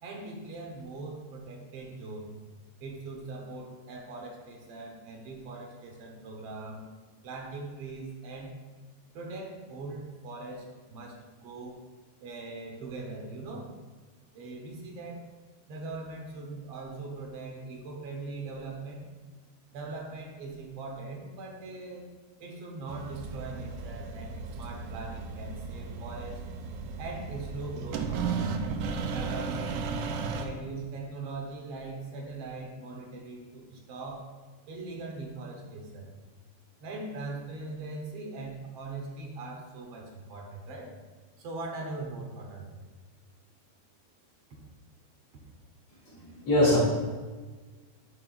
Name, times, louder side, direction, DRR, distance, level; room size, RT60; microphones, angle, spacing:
voice 1, 0.0-2.3 2.8-6.9 7.2-8.5 9.1-11.8 12.2-13.8 14.3-15.2 15.7-19.0 19.7-22.0 22.4-26.4 27.0-28.5 29.1-29.8 30.4-34.3 34.7-36.1 36.8-40.9 41.4-42.8, right 3 dB, 60° right, 0 dB, 2.0 m, -41 dB
sound 1, 22.9-30.5, right 5 dB, 85° right, 2.1 m, -35 dB
voice 2, 46.1-46.8, left 1 dB, 55° left, -7 dB, 3.8 m, -23 dB
11.0 x 6.1 x 2.5 m, 1.4 s
omnidirectional pair, 3.7 m